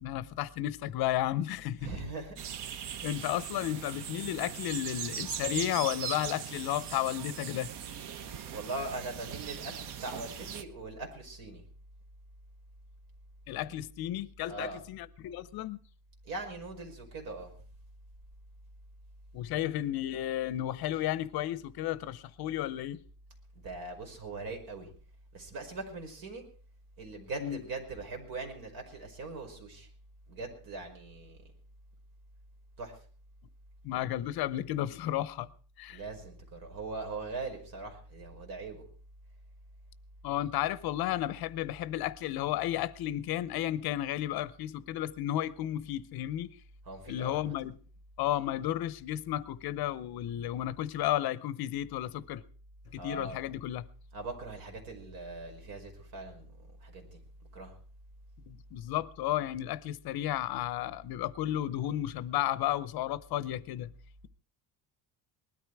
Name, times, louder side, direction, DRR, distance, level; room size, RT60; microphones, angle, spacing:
voice 1, 0.0-1.9 3.0-7.7 13.5-15.8 19.3-23.0 27.4-27.6 33.8-35.5 35.8-36.0 40.2-46.6 47.1-47.7 48.2-52.4 52.9-53.8 58.5-63.9, left 13 dB, 65° left, 0.8 m, -33 dB
voice 2, 1.8-2.4 8.5-11.6 13.7-13.8 14.5-14.8 16.2-17.5 23.6-24.9 25.3-26.5 27.0-29.9 30.3-31.4 32.8-33.0 35.9-38.8 46.8-47.5 53.0-53.5 54.1-57.2 57.5-57.8, right 3 dB, 60° right, 5.3 m, -41 dB
sound 1, 2.4-10.6, right 9 dB, 90° right, 1.3 m, -40 dB
20.0 x 13.0 x 4.7 m
cardioid pair, 175°, 40 cm